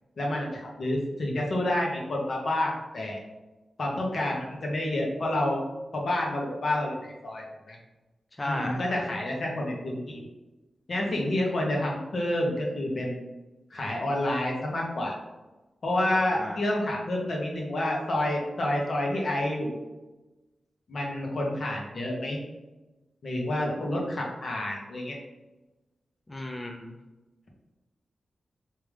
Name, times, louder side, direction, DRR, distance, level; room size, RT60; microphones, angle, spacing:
voice 1, 0.2-3.2 3.8-5.6 5.9-7.8 8.4-10.3 10.9-13.2 13.7-15.1 15.8-19.8 20.9-22.4 23.2-25.2, left 1 dB, 60° left, -2 dB, 1.0 m, -29 dB
voice 2, 8.4-8.8 16.1-16.6 26.3-27.0, left 1 dB, 25° left, 1 dB, 0.4 m, -35 dB
3.5 x 2.8 x 3.3 m, 1.1 s
cardioid pair, 60°, 0 cm